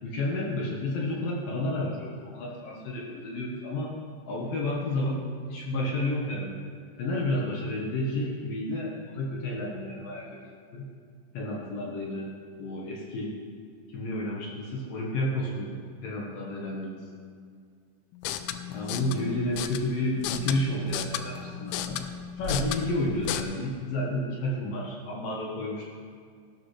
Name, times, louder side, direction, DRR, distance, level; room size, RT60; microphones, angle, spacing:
voice 1, 0.0-3.9 4.3-5.2 5.5-6.6 7.0-10.9 11.3-12.3 12.6-13.3 13.9-17.0 18.7-22.0 22.4-25.8, left 1 dB, 65° left, -3 dB, 2.3 m, -31 dB
sound 1, 18.1-23.4, left 9 dB, 85° left, 2.9 m, -34 dB
16.0 x 12.0 x 3.3 m, 2.1 s
omnidirectional pair, 5.5 m